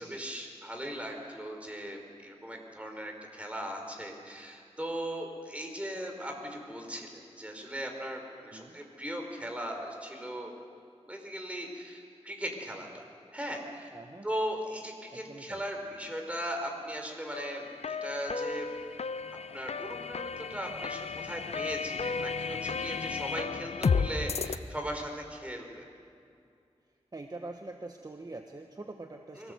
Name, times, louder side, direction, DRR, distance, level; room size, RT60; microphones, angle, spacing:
voice 1, 0.0-10.5 11.1-13.0 13.3-14.0 14.2-18.7 19.5-25.8 29.4-29.5, equal, 10° right, 2 dB, 4.6 m, -38 dB
voice 2, 8.5-8.8 13.9-14.3 15.1-15.6 27.1-29.5, right 2 dB, 35° right, 4 dB, 1.3 m, -44 dB
sound 1, 17.3-24.6, left 5 dB, 70° left, 0.7 m, -33 dB
24.0 x 18.0 x 8.0 m, 2.4 s
wide cardioid pair, 65°, 11 cm